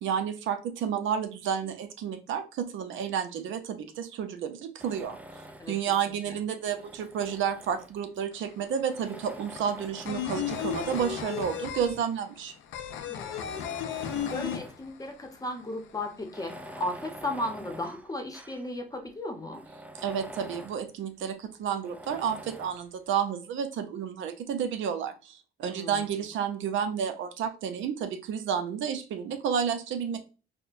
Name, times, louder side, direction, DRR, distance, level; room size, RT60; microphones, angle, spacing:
voice 1, 0.0-12.5 20.0-30.2, right 8 dB, 75° right, 8 dB, 0.5 m, -31 dB
Tools, 4.8-5.9 6.6-8.2 8.9-11.8 12.5-12.6 13.1-14.9 15.3-15.4 16.2-18.7 19.1-19.2 19.5-20.9 21.8-22.8, right 1 dB, 5° right, 0.4 m, -45 dB
voice 2, 5.6-5.9 6.3-6.4 13.1-13.7 14.3-19.6 25.6-26.0, left 1 dB, 20° left, 4 dB, 0.8 m, -36 dB
sound 1, 8.3-8.4 8.7-15.3 15.5-15.6 15.9-16.7, left 9 dB, 85° left, 0.4 m, -34 dB
4.3 x 2.1 x 2.4 m, 0.34 s
cardioid pair, 90°, 20 cm